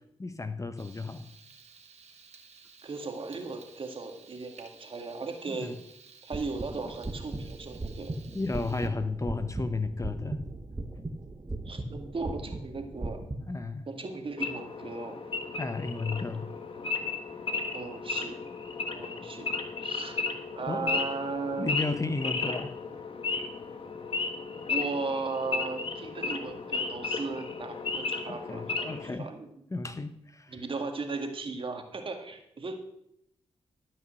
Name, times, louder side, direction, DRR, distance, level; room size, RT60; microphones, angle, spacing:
voice 1, 0.2-1.3 5.5-5.8 8.3-10.4 13.4-13.9 15.6-16.5 20.5-20.9 21.5-22.8 28.3-29.3 29.7-30.6, left 3 dB, 25° left, 10 dB, 0.9 m, -33 dB
Frying (food), 0.8-8.9, right 5 dB, 65° right, 1.4 m, -55 dB
voice 2, 2.8-5.7 6.2-8.1 11.7-13.2 13.9-15.2 17.7-18.4 18.9-19.5 19.8-21.7 24.6-29.5 30.5-32.8, right 3 dB, 50° right, 5 dB, 1.9 m, -36 dB
sound 1, 6.3-13.4, right 2 dB, 30° right, 1.4 m, -38 dB
Wild animals / Idling, 14.4-29.1, left 4 dB, 50° left, 1.3 m, -34 dB
12.5 x 5.5 x 6.4 m, 0.76 s
supercardioid pair, 50°, 12 cm